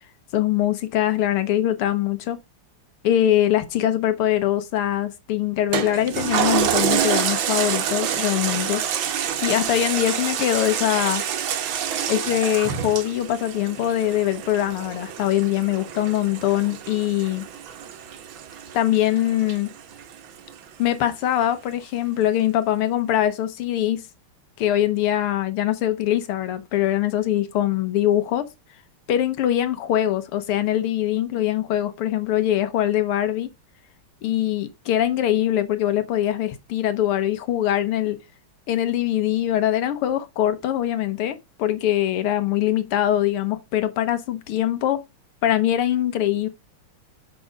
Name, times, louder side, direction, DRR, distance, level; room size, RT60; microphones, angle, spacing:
voice 1, 0.3-2.4 3.0-8.8 9.4-11.2 12.1-17.5 18.7-19.7 20.8-24.0 24.6-28.5 29.1-33.5 34.2-38.2 38.7-45.0 45.4-46.5, left 12 dB, 80° left, 1.9 m, -22 dB
Toilet flush, 5.7-20.5 21.0-21.1, right 9 dB, 65° right, 1.7 m, -27 dB
6.4 x 6.1 x 5.1 m
omnidirectional pair, 2.4 m